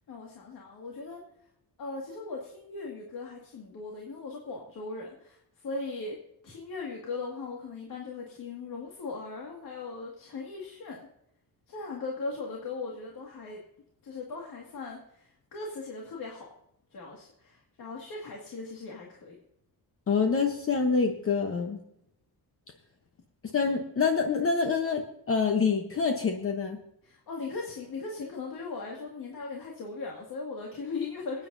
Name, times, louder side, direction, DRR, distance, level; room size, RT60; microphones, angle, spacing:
voice 1, 0.1-1.2 1.8-5.4 5.6-6.2 6.4-11.1 11.7-13.6 14.0-16.5 16.9-19.4 27.0-31.5, left 3 dB, 60° left, -2 dB, 2.1 m, -38 dB
voice 2, 20.1-21.8 23.5-26.8, left 5 dB, 35° left, 4 dB, 0.9 m, -26 dB
26.0 x 9.2 x 2.7 m, 0.76 s
wide cardioid pair, 165°, 38 cm